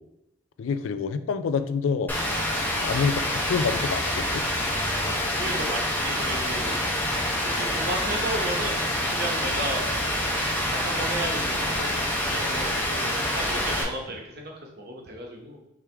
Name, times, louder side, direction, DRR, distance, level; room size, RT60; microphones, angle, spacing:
voice 1, 0.6-2.1 2.7-4.4, left 5 dB, 80° left, 11 dB, 0.3 m, -27 dB
Rain, 2.1-13.8, left 1 dB, 10° left, 0.6 m, -27 dB
voice 2, 5.4-6.7 7.4-8.7 9.1-9.8 10.8-14.5 14.8-15.6, right 1 dB, 50° right, 0 dB, 1.0 m, -33 dB
4.8 x 3.4 x 3.3 m, 0.85 s
head